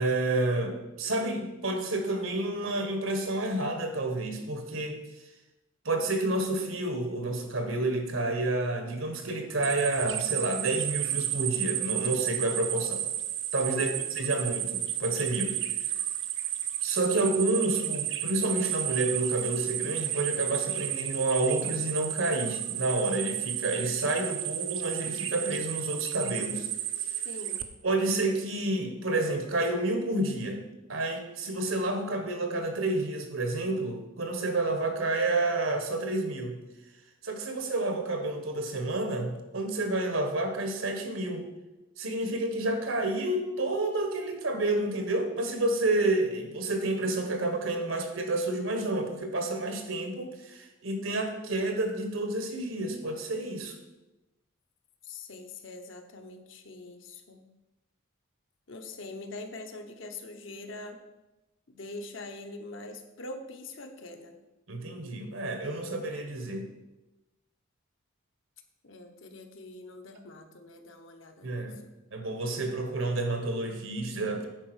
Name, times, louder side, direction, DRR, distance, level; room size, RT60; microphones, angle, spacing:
voice 1, 0.0-5.0 5.8-13.1 13.5-13.9 14.1-15.5 16.8-26.7 27.8-30.6 30.9-36.6 37.2-41.5 42.0-53.7 64.7-66.6 71.4-71.8 72.1-74.5, right 2 dB, 80° right, 5 dB, 1.5 m, -29 dB
sound 1, 9.6-27.6, right 12 dB, 65° right, 0.6 m, -32 dB
voice 2, 13.7-14.4 27.2-27.7 55.0-57.4 58.7-61.0 61.7-64.4 68.8-71.7, left 2 dB, 70° left, 5 dB, 1.0 m, -43 dB
9.9 x 4.6 x 6.3 m, 1.0 s
head